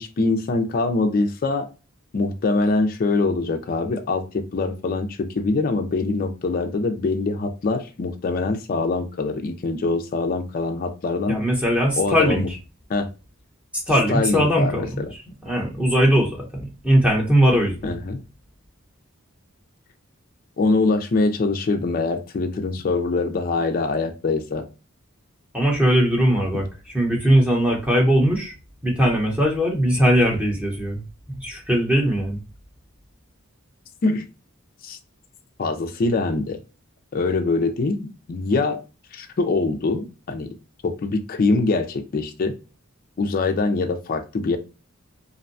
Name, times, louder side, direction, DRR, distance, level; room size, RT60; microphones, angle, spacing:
voice 1, 0.0-1.7 2.1-11.4 12.0-12.5 12.9-13.1 14.1-15.1 17.8-18.2 20.6-24.7 34.0-34.3 34.8-35.0 35.6-36.6 37.1-38.8 39.1-40.5 40.8-42.5 43.2-44.6, left 3 dB, 40° left, 0.4 m, -23 dB
voice 2, 11.3-12.4 13.7-15.0 15.4-18.0 25.5-26.6 26.9-28.5 28.8-31.0 31.4-32.4, equal, 5° right, 0.8 m, -20 dB
2.6 x 2.1 x 2.5 m
head